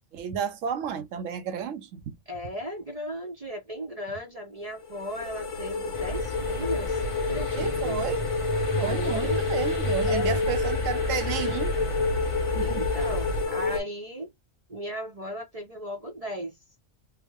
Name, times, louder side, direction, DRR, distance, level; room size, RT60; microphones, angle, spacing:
voice 1, 0.1-2.2 7.6-8.3 8.8-11.7 12.5-12.8, right 7 dB, 70° right, 0.9 m, -32 dB
voice 2, 2.3-8.0 8.7-9.4 10.0-10.4 12.6-14.3 14.7-16.6, equal, 35° right, 0.7 m, -36 dB
sound 1, 4.8-13.8, left 4 dB, 70° left, 1.4 m, -29 dB
sound 2, 5.9-13.4, equal, 30° left, 0.7 m, -32 dB
3.5 x 2.1 x 3.4 m
omnidirectional pair, 1.4 m